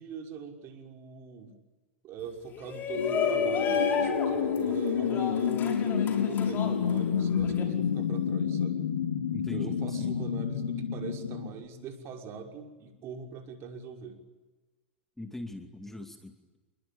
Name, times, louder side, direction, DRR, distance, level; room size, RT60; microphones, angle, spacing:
voice 1, 0.0-1.5 2.0-8.8 9.5-14.2, right 6 dB, 40° right, 3 dB, 6.0 m, -42 dB
Shout, 2.5-7.6, left 7 dB, 30° left, 6.9 m, -32 dB
sound 1, 2.9-11.5, left 7 dB, 90° left, 3.9 m, -29 dB
voice 2, 9.3-10.2 15.2-16.6, left 1 dB, 5° left, 5 dB, 2.6 m, -42 dB
29.0 x 23.0 x 8.9 m, 1.2 s
hypercardioid pair, 115°, 6 cm